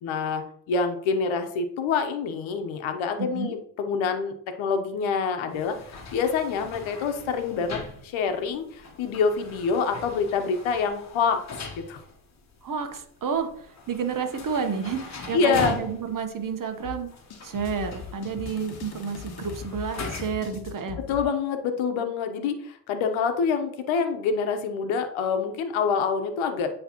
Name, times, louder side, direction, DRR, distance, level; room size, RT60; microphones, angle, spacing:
voice 1, 0.0-11.4 11.8-12.0 15.3-15.8 21.0-26.7, left 5 dB, 70° left, 7 dB, 1.1 m, -26 dB
voice 2, 3.2-3.5 12.6-17.1 17.4-21.0, right 6 dB, 40° right, 6 dB, 1.1 m, -30 dB
sound 1, 5.5-20.6, left 3 dB, 35° left, 1.4 m, -41 dB
sound 2, 16.8-21.2, left 6 dB, 50° left, 1.1 m, -40 dB
9.5 x 3.3 x 3.0 m, 0.64 s
supercardioid pair, 65°, 48 cm